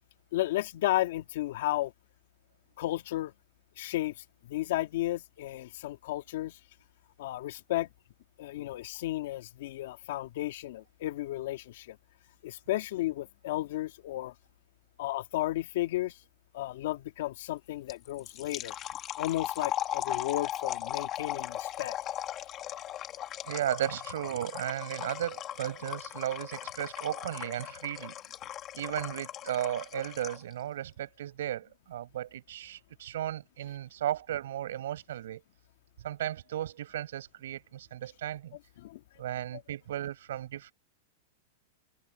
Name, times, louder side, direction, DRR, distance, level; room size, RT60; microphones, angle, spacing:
voice 1, 0.3-1.9 2.8-3.3 3.8-6.6 7.2-7.9 8.4-12.0 12.4-14.3 15.0-16.2 16.5-18.8 19.2-22.0 38.8-39.0, left 16 dB, 65° left, 2.2 m, -33 dB
sound 1, 17.9-30.5, left 11 dB, 30° left, 2.2 m, -38 dB
voice 2, 23.4-28.1 28.7-35.4 36.0-38.6 39.2-40.7, right 12 dB, 75° right, 6.5 m, -35 dB
supercardioid pair, 150°, 0 cm